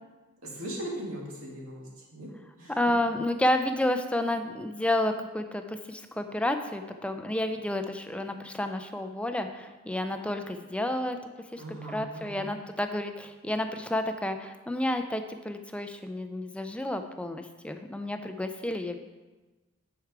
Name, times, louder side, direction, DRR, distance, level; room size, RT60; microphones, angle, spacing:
voice 1, 0.4-2.3 2.6-2.8 11.6-12.4, right 1 dB, 70° right, -4 dB, 2.0 m, -39 dB
voice 2, 2.7-11.2 11.5-19.0, left 1 dB, 5° left, 7 dB, 0.4 m, -30 dB
10.0 x 4.7 x 4.7 m, 1.2 s
head